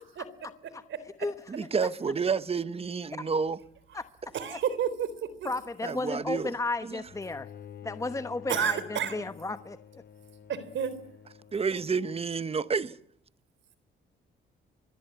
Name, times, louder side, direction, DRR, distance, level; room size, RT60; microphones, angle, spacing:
voice 1, 1.5-3.6 5.8-6.5 6.8-7.0 11.5-13.0, right 5 dB, 30° right, 1.1 m, -30 dB
voice 2, 4.3-5.5 8.5-9.2 10.5-10.9, right 8 dB, 70° right, 3.6 m, -30 dB
voice 3, 5.4-7.5 7.8-9.8, left 3 dB, 15° left, 1.0 m, -33 dB
Bowed string instrument, 7.0-12.3, left 8 dB, 55° left, 4.6 m, -50 dB
25.0 x 23.0 x 8.2 m
cardioid pair, 90°, 20 cm